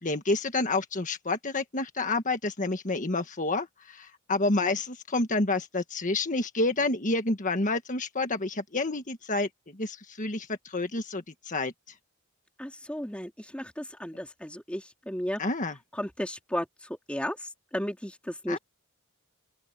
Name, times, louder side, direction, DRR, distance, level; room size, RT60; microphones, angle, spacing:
voice 1, 0.0-11.7 15.4-15.7 18.5-18.6, left 2 dB, 35° left, 1.6 m, -29 dB
voice 2, 12.6-15.4 15.9-18.6, equal, 5° left, 3.4 m, -34 dB
open air
head